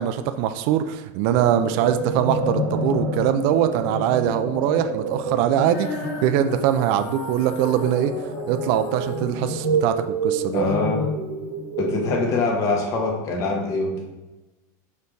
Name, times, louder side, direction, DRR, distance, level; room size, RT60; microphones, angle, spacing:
voice 1, 0.0-8.1 8.5-10.6, right 10 dB, 45° right, 9 dB, 0.4 m, -22 dB
sound 1, 1.4-12.7, right 2 dB, 70° right, 1.2 m, -29 dB
Female singing, 5.7-11.9, left 3 dB, 65° left, 1.5 m, -34 dB
voice 2, 10.5-11.1 11.8-14.1, left 3 dB, 35° left, 1 dB, 1.2 m, -24 dB
4.7 x 4.4 x 5.4 m, 1.1 s
supercardioid pair, 170°, 9 cm